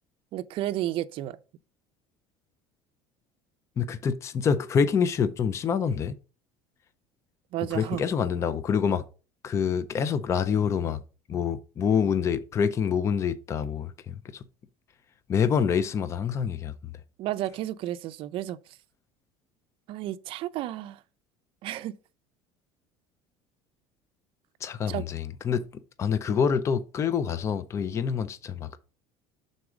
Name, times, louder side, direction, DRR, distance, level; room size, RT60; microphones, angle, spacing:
voice 1, 0.3-1.4 7.5-8.0 17.2-18.6 19.9-21.0 21.6-22.0 24.9-25.1, right 13 dB, 50° right, 0.5 m, -32 dB
voice 2, 3.8-6.1 7.7-9.0 9.4-11.0 11.3-14.4 15.3-16.9 24.6-25.6 26.0-28.8, left 7 dB, 25° left, 0.4 m, -26 dB
6.2 x 3.9 x 4.8 m
cardioid pair, 140°, 11 cm